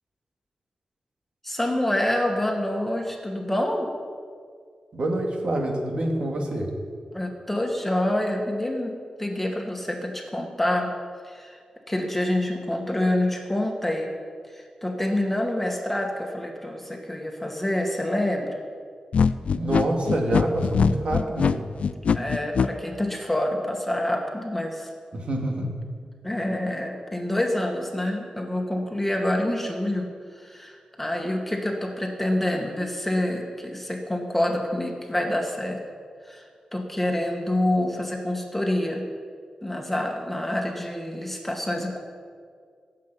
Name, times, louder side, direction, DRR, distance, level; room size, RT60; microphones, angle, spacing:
voice 1, 1.4-3.9 7.1-8.9 9.2-10.9 11.2-11.6 11.9-14.1 14.5-18.6 22.1-24.9 26.2-35.8 36.2-39.0 39.6-42.0, left 1 dB, 10° left, 1 dB, 1.9 m, -27 dB
voice 2, 4.9-6.7 19.5-21.6 25.1-25.7, right 1 dB, 60° right, 1 dB, 2.5 m, -26 dB
sound 1, 19.1-22.7, left 6 dB, 70° left, 0.5 m, -22 dB
17.0 x 7.6 x 9.1 m, 2.1 s
wide cardioid pair, 120°, 2 cm